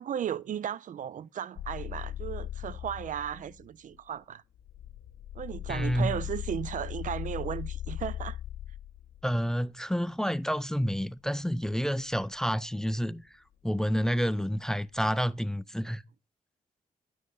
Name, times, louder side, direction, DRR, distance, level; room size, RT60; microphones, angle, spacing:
voice 1, 0.0-4.4 5.3-8.4, right 9 dB, 60° right, 0.5 m, -35 dB
sound 1, 1.6-3.6 4.6-9.4 12.2-12.3, left 11 dB, 80° left, 0.8 m, -38 dB
voice 2, 5.7-6.1 9.2-13.2 13.6-16.0, equal, 5° left, 0.4 m, -29 dB
10.5 x 6.4 x 3.9 m
cardioid pair, 75°, 15 cm